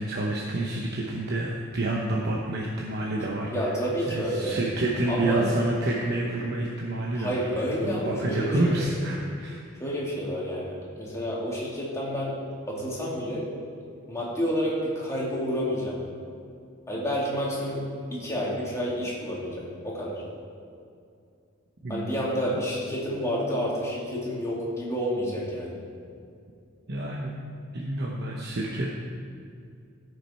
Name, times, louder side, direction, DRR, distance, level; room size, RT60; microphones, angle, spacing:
voice 1, 0.0-3.7 4.1-7.5 7.8-9.6 21.8-22.6 26.9-27.3 27.7-28.9, right 1 dB, 55° right, -2 dB, 0.9 m, -28 dB
voice 2, 3.5-4.6 5.1-5.5 7.1-8.9 9.8-12.4 12.7-13.5 14.1-16.0 16.9-17.8 18.1-20.2 21.9-25.8, equal, 15° left, -6 dB, 2.5 m, -29 dB
15.0 x 6.5 x 4.3 m, 2.4 s
head